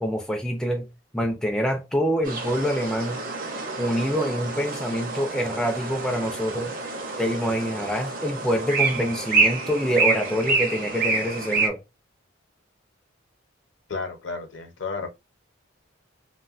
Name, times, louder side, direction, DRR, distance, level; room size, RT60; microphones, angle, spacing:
voice 1, 0.0-0.9 1.1-3.2 3.8-6.7 7.2-11.8, equal, 5° left, 0.3 m, -26 dB
sound 1, 2.2-11.7, right 3 dB, 45° right, 0.6 m, -27 dB
voice 2, 13.9-15.1, left 4 dB, 70° left, 0.7 m, -32 dB
3.3 x 2.2 x 2.4 m
head